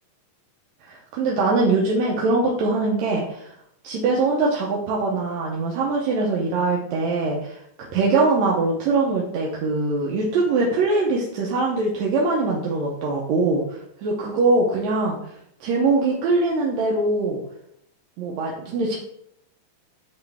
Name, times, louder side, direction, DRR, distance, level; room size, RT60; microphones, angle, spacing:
voice 1, 0.8-3.5 3.8-7.6 7.9-15.2 15.6-17.4 18.2-19.0, right 3 dB, 75° right, -3 dB, 1.8 m, -22 dB
9.0 x 3.1 x 3.4 m, 0.74 s
omnidirectional pair, 3.7 m